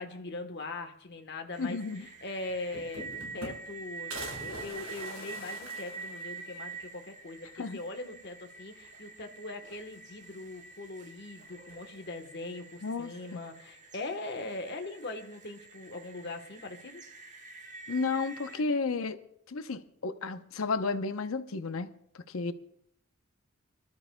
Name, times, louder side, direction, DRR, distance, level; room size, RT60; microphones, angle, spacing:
voice 1, 0.0-1.8 2.2-17.0, left 2 dB, 55° left, 1.2 m, -41 dB
sound 1, 1.5-18.6, right 4 dB, 35° right, 1.2 m, -47 dB
voice 2, 1.6-2.1 7.6-7.8 12.8-13.4 17.9-19.2 19.5-21.9 22.1-22.5, left 4 dB, 80° left, 0.7 m, -32 dB
sound 2, 2.1-2.2 2.5-3.8 4.1-6.7 7.1-7.2 7.5-7.6 8.7-9.2 9.6-10.3 11.3-11.9, right 1 dB, 85° right, 5.6 m, -45 dB
26.0 x 13.0 x 2.2 m
head